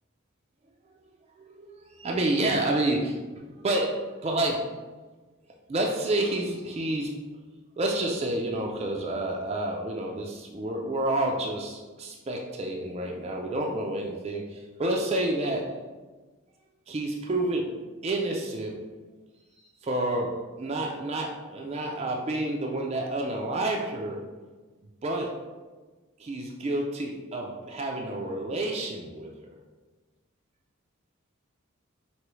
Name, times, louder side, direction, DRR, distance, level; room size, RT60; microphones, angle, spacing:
voice 1, 1.4-3.2 3.5-4.7 5.7-7.2 7.8-15.7 16.9-17.7 18.0-18.8 19.8-24.2 25.0-25.4 26.2-29.3, right 1 dB, 30° right, 0 dB, 0.3 m, -29 dB
4.6 x 2.9 x 3.1 m, 1.3 s
head